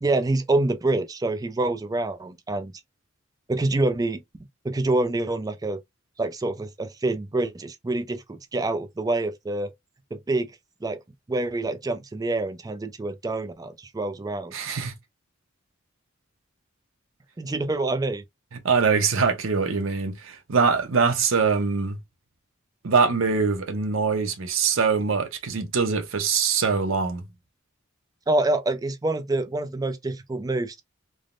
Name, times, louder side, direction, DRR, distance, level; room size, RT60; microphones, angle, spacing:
voice 1, 0.0-2.8 3.5-4.2 4.6-5.8 6.2-9.7 10.1-10.5 10.8-11.0 11.3-14.5 17.4-18.2 28.3-30.8, right 2 dB, 20° right, 0.4 m, -26 dB
voice 2, 14.5-14.9 18.6-22.0 22.8-27.2, right 5 dB, 85° right, 0.7 m, -23 dB
3.3 x 2.1 x 2.4 m
head